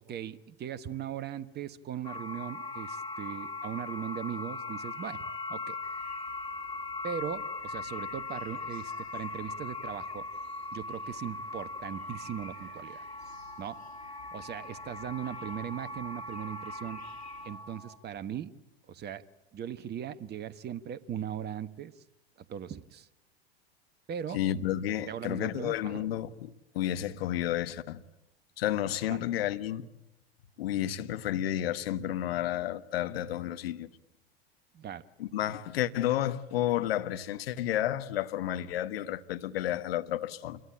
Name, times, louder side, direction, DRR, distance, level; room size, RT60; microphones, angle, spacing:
voice 1, 0.0-5.8 7.0-10.3 10.7-13.0 13.6-13.8 14.3-17.0 17.4-18.6 18.9-19.3 19.5-22.0 22.5-23.1 24.1-24.4 25.1-26.1 29.1-29.2 34.7-35.1, right 9 dB, 30° right, 1.2 m, -39 dB
sound 1, 2.0-18.0, left 2 dB, 15° left, 2.6 m, -40 dB
sound 2, 5.8-17.5, left 5 dB, 90° left, 2.8 m, -56 dB
voice 2, 24.3-28.0 28.6-29.9 30.6-33.9 35.2-40.6, left 12 dB, 70° left, 1.4 m, -31 dB
28.0 x 22.5 x 8.7 m
hypercardioid pair, 85°, 31 cm